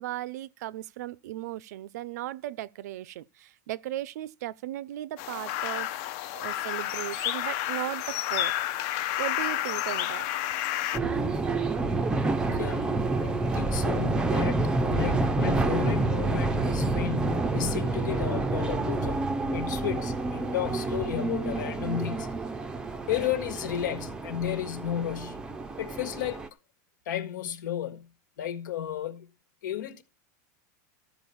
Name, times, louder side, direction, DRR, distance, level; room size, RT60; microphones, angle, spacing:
voice 1, 0.0-6.0 6.3-8.5 9.2-10.3 11.0-11.4, right 14 dB, 60° right, 0.5 m, -37 dB
sound 1, 5.2-11.0, left 13 dB, 40° left, 0.6 m, -30 dB
sound 2, 10.9-26.5, right 3 dB, 10° right, 0.5 m, -28 dB
voice 2, 12.4-19.2 19.5-22.3 23.1-25.4 25.8-26.4 27.0-28.1 28.4-29.3 29.6-30.0, left 11 dB, 80° left, 1.7 m, -33 dB
14.0 x 5.0 x 7.0 m
supercardioid pair, 175°, 10 cm